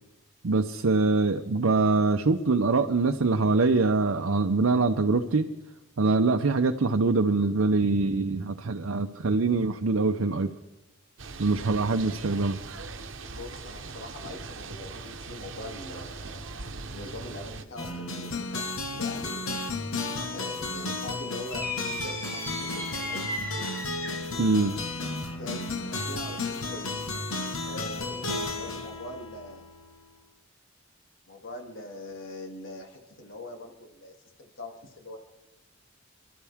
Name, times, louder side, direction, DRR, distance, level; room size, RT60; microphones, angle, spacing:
voice 1, 0.4-5.5 6.0-10.5 11.4-12.6 24.4-24.7, right 3 dB, 85° right, 5 dB, 0.7 m, -24 dB
sound 1, 11.2-17.6, right 3 dB, 65° right, 1.0 m, -40 dB
voice 2, 13.2-16.5 16.9-21.7 22.0-23.7 25.4-27.1 27.6-29.7 31.3-35.2, left 1 dB, 65° left, 1 dB, 2.5 m, -43 dB
sound 2, 17.8-30.0, left 2 dB, 90° left, 1.6 m, -33 dB
sound 3, 21.5-24.4, left 1 dB, 10° left, 1.6 m, -35 dB
26.5 x 12.5 x 3.6 m, 0.99 s
head